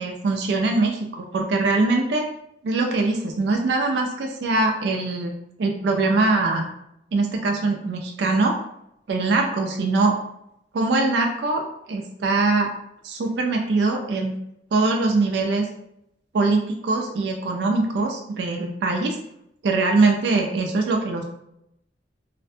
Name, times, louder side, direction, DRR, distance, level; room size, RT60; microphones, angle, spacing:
voice 1, 0.0-2.3 2.6-5.3 5.6-6.7 7.1-8.6 9.1-10.2 10.7-12.7 13.0-14.4 14.7-15.7 16.3-19.2 19.6-21.2, right 3 dB, 75° right, 2 dB, 0.3 m, -22 dB
2.4 x 2.1 x 2.6 m, 0.78 s
head